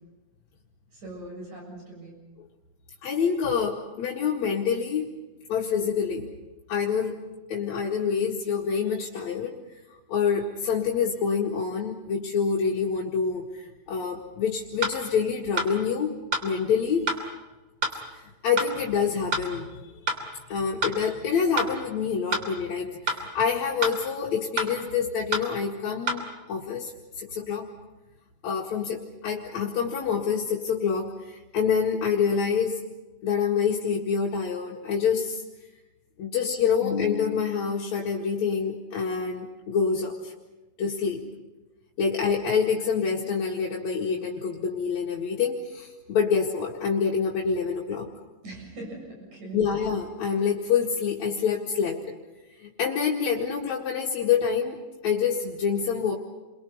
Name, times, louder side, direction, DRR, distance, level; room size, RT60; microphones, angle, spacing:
voice 1, 0.9-2.2 48.4-49.6, right 2 dB, 90° right, -1 dB, 9.1 m, -40 dB
voice 2, 3.0-5.1 5.5-6.3 6.7-7.2 7.5-9.6 10.1-16.1 16.4-17.1 18.1-27.7 28.4-32.8 33.2-35.4 36.2-40.3 40.8-41.2 42.0-48.1 49.5-52.2 52.6-54.8 55.0-56.1, left 6 dB, 70° left, -4 dB, 3.3 m, -27 dB
sound 1, 14.8-15.0 15.6-15.7 16.3-16.5 17.1-17.2 17.8-18.0 18.6-18.7 19.3-19.5 20.1-20.2 20.8-21.0 21.6-21.7 22.3-22.5 23.1-23.2 23.8-24.0 24.6-24.7 25.3-25.5 26.1-26.2, right 3 dB, 55° right, 4.1 m, -27 dB
30.0 x 23.5 x 5.5 m, 1.1 s
omnidirectional pair, 3.3 m